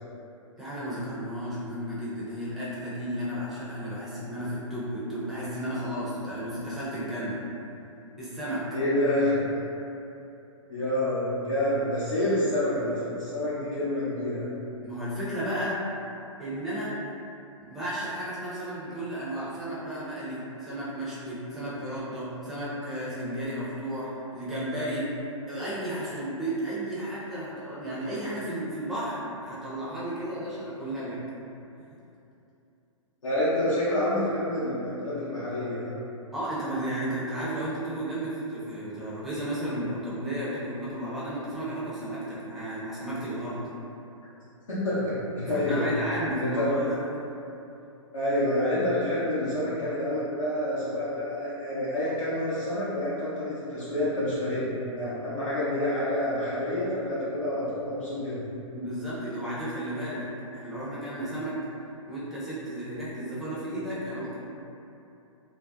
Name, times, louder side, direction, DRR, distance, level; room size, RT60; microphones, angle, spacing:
voice 1, 0.6-7.4 8.2-8.6 14.8-15.8 16.4-16.9 17.6-25.1 25.5-31.2 36.3-43.6 45.5-47.0 58.7-60.3 60.5-61.6 62.1-64.4, right 1 dB, ahead, -11 dB, 0.4 m, -33 dB
voice 2, 8.7-9.4 10.7-14.5 33.2-35.9 44.7-45.9 46.4-46.7 48.1-58.4, left 1 dB, 70° left, -11 dB, 0.7 m, -28 dB
2.4 x 2.1 x 2.4 m, 2.8 s
figure-of-eight pair, 120°, 17 cm